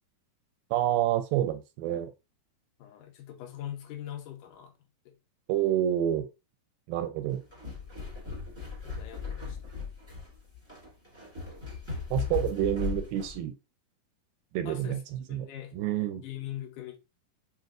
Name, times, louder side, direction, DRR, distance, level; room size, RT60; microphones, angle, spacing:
voice 1, 0.7-2.1 5.5-6.3 6.9-7.4 12.1-13.5 14.5-15.5 15.7-16.2, right 12 dB, 80° right, 2.1 m, -28 dB
voice 2, 2.8-4.7 5.1-5.2 8.7-9.6 14.7-15.8 16.1-17.0, left 12 dB, 75° left, 2.0 m, -42 dB
sound 1, 7.3-13.4, left 6 dB, 15° right, 0.9 m, -37 dB
5.9 x 2.5 x 2.4 m
omnidirectional pair, 4.4 m